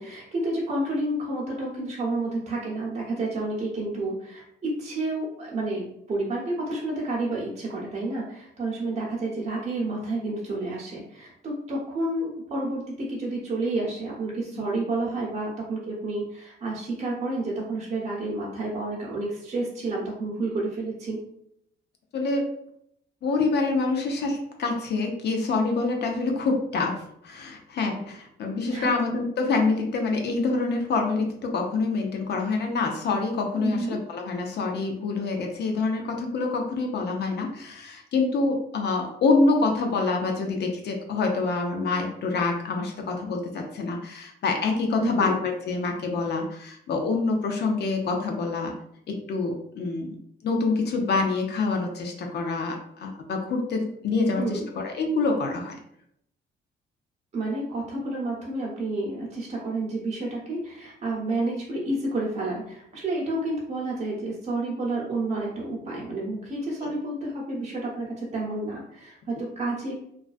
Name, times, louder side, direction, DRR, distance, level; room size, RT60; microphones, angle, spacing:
voice 1, 0.0-21.2 28.7-28.9 33.5-34.0 45.0-45.4 54.4-54.7 57.3-69.9, right 2 dB, 35° right, -5 dB, 0.8 m, -30 dB
voice 2, 22.1-22.5 23.2-48.7 49.1-55.8 66.8-66.9, left 3 dB, 60° left, 2 dB, 0.5 m, -26 dB
2.3 x 2.2 x 2.4 m, 0.73 s
cardioid pair, 90°, 20 cm